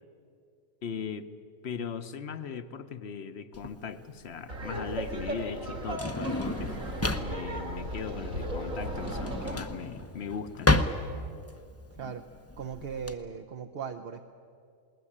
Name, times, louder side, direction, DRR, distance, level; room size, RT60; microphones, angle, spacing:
voice 1, 0.8-1.3 1.6-6.8 7.1-10.7, left 6 dB, 55° left, 11 dB, 1.1 m, -38 dB
Drawer open or close, 3.5-13.1, left 2 dB, 15° left, 0.6 m, -32 dB
Laughter, 4.5-9.6, right 1 dB, 75° right, 3.2 m, -36 dB
voice 2, 12.6-14.2, right 7 dB, 50° right, 5 dB, 0.9 m, -38 dB
20.5 x 19.0 x 9.9 m, 2.4 s
omnidirectional pair, 1.4 m